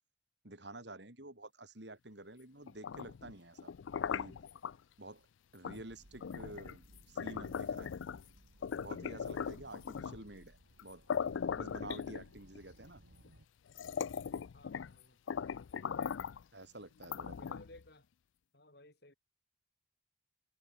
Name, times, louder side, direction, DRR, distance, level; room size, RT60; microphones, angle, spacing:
voice 1, 0.4-3.7 4.1-4.4 5.0-5.3 5.5-7.9 8.8-11.1 11.6-13.0 16.5-17.6, right 2 dB, 60° right, 4.0 m, -50 dB
sound 1, 2.7-4.8 5.6-5.8 6.2-8.3 8.6-10.3 10.8-10.9 11.1-12.6 13.3-13.4 13.7-15.0 15.3-16.4 17.0-17.8, left 6 dB, 80° left, 0.4 m, -39 dB
sound 2, 5.9-13.4, right 1 dB, 90° right, 4.4 m, -63 dB
voice 2, 14.5-15.2 17.4-18.1 18.5-19.1, left 1 dB, 55° left, 4.9 m, -58 dB
head